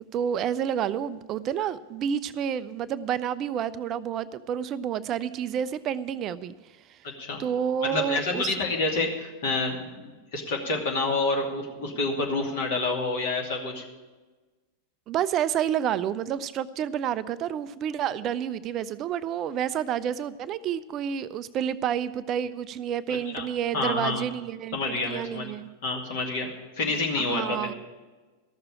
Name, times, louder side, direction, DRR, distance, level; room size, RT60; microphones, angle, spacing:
voice 1, 0.1-6.5 6.9-7.0 7.4-8.6 15.1-25.7 27.2-27.7, right 9 dB, 35° right, 16 dB, 0.4 m, -29 dB
voice 2, 7.0-7.4 7.8-13.8 23.1-23.4 23.7-24.2 24.7-25.5 25.8-26.5 26.8-27.6, left 3 dB, 55° left, 1 dB, 2.6 m, -28 dB
13.5 x 6.7 x 8.8 m, 1.3 s
figure-of-eight pair, 90°, 0 cm